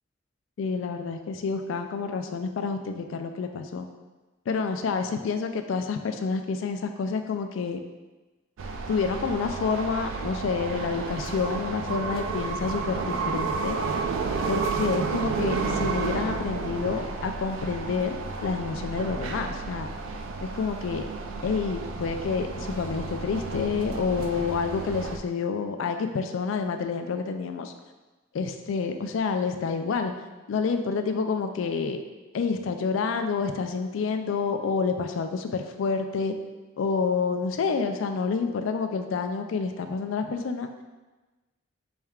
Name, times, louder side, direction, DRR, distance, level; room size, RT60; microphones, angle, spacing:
voice 1, 0.6-3.9 4.5-7.8 8.9-13.8 14.5-19.9 20.4-21.0 21.4-27.7 28.3-30.1 30.5-32.0 32.3-36.3 36.8-40.7, left 5 dB, 70° left, 7 dB, 0.3 m, -28 dB
sound 1, 8.6-25.2, right 4 dB, 70° right, 0.3 m, -31 dB
4.2 x 3.5 x 2.3 m, 1.2 s
head